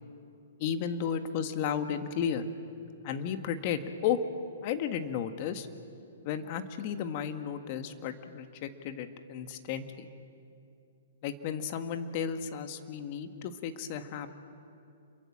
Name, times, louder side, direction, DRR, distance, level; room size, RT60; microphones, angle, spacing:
voice 1, 0.6-2.4 3.0-4.2 4.6-5.7 6.2-10.1 11.2-14.3, left 8 dB, 45° left, 8 dB, 1.8 m, -33 dB
28.5 x 23.0 x 7.5 m, 2.5 s
hypercardioid pair, 125°, 0 cm